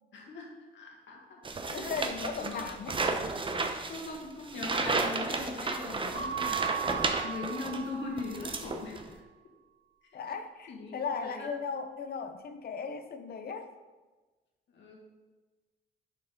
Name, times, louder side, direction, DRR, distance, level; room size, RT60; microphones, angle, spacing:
voice 1, 0.1-1.4 1.7-2.1 2.4-2.6 3.9-6.7 7.2-9.1 10.3-10.4 10.7-10.9 11.2-11.5 14.7-15.0, left 3 dB, 65° left, -1 dB, 2.0 m, -40 dB
sound 1, 1.4-7.8 8.2-9.1, right 3 dB, 25° right, 0.8 m, -33 dB
voice 2, 1.7-3.0 10.1-13.7, left 5 dB, 50° left, 9 dB, 0.8 m, -37 dB
Keyboard (musical) / Bell, 6.1-8.6, right 9 dB, 50° right, 1.8 m, -37 dB
11.0 x 4.6 x 3.8 m, 1.3 s
cardioid pair, 90°, 20 cm